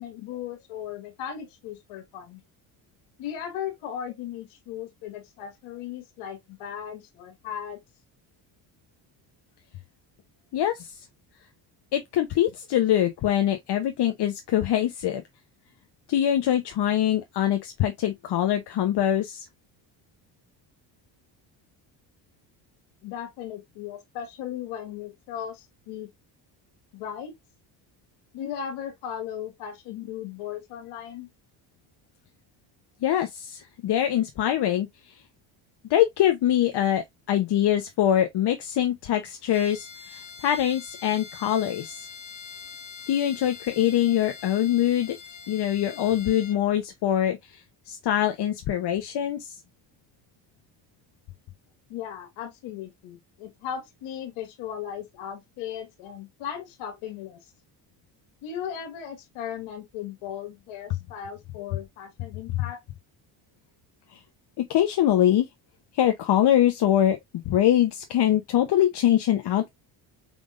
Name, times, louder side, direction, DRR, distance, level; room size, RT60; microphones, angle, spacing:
voice 1, 0.0-2.4 3.2-7.8 23.0-26.1 26.9-27.3 28.3-31.3 51.9-57.4 58.4-62.8, left 9 dB, 80° left, 1.9 m, -37 dB
voice 2, 10.5-11.0 11.9-15.2 16.1-19.4 33.0-34.9 35.9-42.1 43.1-45.2 45.5-47.6 47.9-49.6 64.1-64.2 64.6-65.5 65.9-67.2 67.5-69.7, left 11 dB, 55° left, 0.9 m, -23 dB
Bowed string instrument, 39.4-46.6, left 6 dB, 35° left, 1.6 m, -44 dB
5.1 x 3.6 x 2.5 m
supercardioid pair, 80°, 49 cm